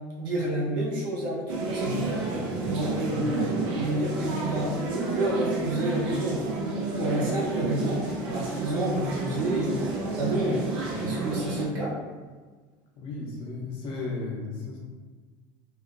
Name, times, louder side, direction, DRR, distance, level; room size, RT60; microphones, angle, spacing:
voice 1, 0.2-2.0 2.6-9.8 10.2-10.6 11.0-11.9, right 1 dB, 80° right, -6 dB, 1.1 m, -29 dB
sound 1, 1.5-11.7, right 3 dB, 60° right, 0.7 m, -30 dB
voice 2, 3.0-3.9 13.0-14.8, left 3 dB, 55° left, -3 dB, 0.9 m, -35 dB
2.8 x 2.8 x 2.6 m, 1.4 s
supercardioid pair, 100°, 11 cm